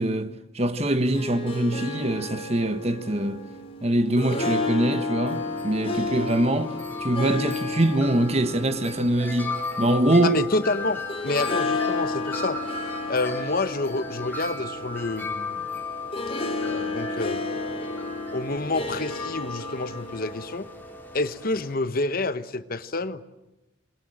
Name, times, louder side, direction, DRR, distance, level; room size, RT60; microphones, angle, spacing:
voice 1, 0.0-3.4 3.8-6.7 7.0-10.4, right 1 dB, 35° right, 1.4 m, -23 dB
Harp, 0.9-20.8, left 3 dB, 30° left, 3.1 m, -33 dB
Wind chime, 5.3-21.7, left 3 dB, 10° left, 3.5 m, -36 dB
voice 2, 10.2-12.6 13.1-15.6 16.7-20.7 21.1-23.2, left 2 dB, 50° left, 1.1 m, -28 dB
28.0 x 22.0 x 7.8 m
head